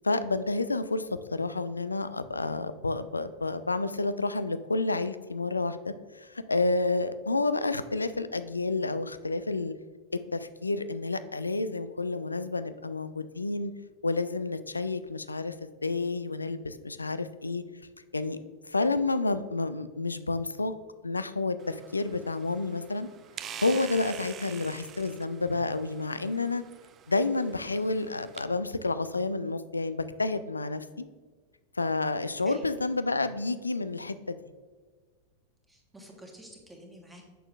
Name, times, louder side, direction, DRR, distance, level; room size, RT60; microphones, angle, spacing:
voice 1, 0.0-9.7 10.3-13.7 14.0-15.5 15.8-17.6 18.1-18.4 18.6-20.7 21.0-23.1 23.6-26.6 27.1-30.8 31.8-34.4, left 3 dB, 80° left, 13 dB, 0.3 m, -30 dB
sound 1, 21.6-28.4, right 9 dB, 30° right, 0.3 m, -46 dB
voice 2, 32.4-32.8 35.7-37.2, right 1 dB, 5° right, 0 dB, 1.3 m, -48 dB
6.7 x 6.2 x 2.4 m, 1.4 s
figure-of-eight pair, 90°, 0 cm